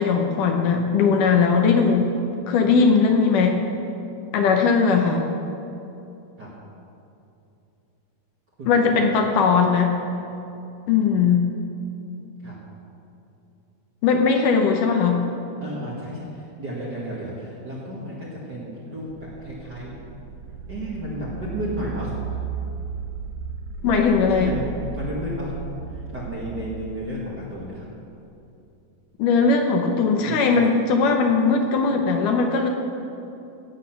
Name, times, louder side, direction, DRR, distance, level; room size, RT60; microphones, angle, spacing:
voice 1, 0.0-2.1 2.5-3.6 4.3-5.3 8.7-9.9 10.9-11.5 14.0-15.2 23.8-24.5 29.2-32.7, left 5 dB, 70° left, 3 dB, 2.2 m, -19 dB
voice 2, 8.6-9.1 12.4-12.5 15.6-20.0 20.7-22.4 24.3-24.6 24.9-25.5 25.9-27.9 30.2-30.6, equal, 40° right, -6 dB, 1.7 m, -33 dB
sound 1, 19.1-27.9, right 6 dB, 75° right, 2.1 m, -35 dB
15.5 x 8.3 x 5.9 m, 2.8 s
omnidirectional pair, 4.2 m